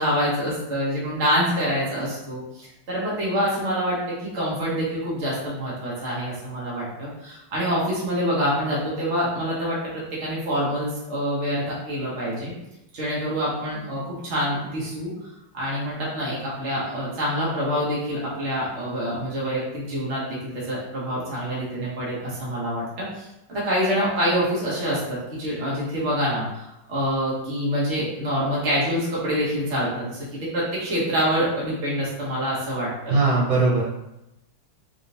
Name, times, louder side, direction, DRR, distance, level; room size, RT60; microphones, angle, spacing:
voice 1, 0.0-12.5 12.9-15.1 15.5-33.2, equal, 45° right, -7 dB, 1.0 m, -26 dB
voice 2, 33.1-33.8, right 3 dB, 75° right, -5 dB, 1.7 m, -19 dB
3.5 x 3.5 x 2.7 m, 0.90 s
omnidirectional pair, 2.2 m